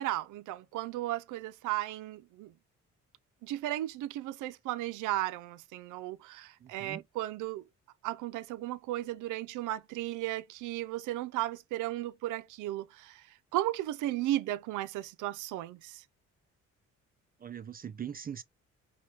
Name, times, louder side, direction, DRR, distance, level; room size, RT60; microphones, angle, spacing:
voice 1, 0.0-2.5 3.4-7.6 8.0-16.0, right 15 dB, 85° right, 0.5 m, -35 dB
voice 2, 6.6-7.0 17.4-18.4, right 8 dB, 30° right, 0.4 m, -41 dB
5.5 x 2.2 x 3.3 m
cardioid pair, 90°, 30 cm